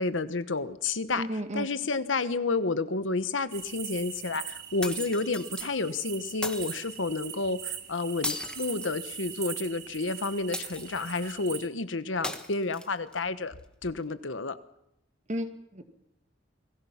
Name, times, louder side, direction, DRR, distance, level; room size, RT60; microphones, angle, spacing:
voice 1, 0.0-1.3 1.5-13.5 13.8-14.6, left 3 dB, 75° left, 12 dB, 1.2 m, -30 dB
voice 2, 1.2-1.7 15.3-15.8, equal, 40° right, 7 dB, 2.0 m, -33 dB
sound 1, 3.5-11.7, right 10 dB, 60° right, 2.2 m, -41 dB
sound 2, 4.8-5.7 6.4-7.0 8.2-9.4 10.5-11.2 12.2-13.2, left 2 dB, 5° left, 1.5 m, -37 dB
28.5 x 20.0 x 5.8 m, 0.84 s
head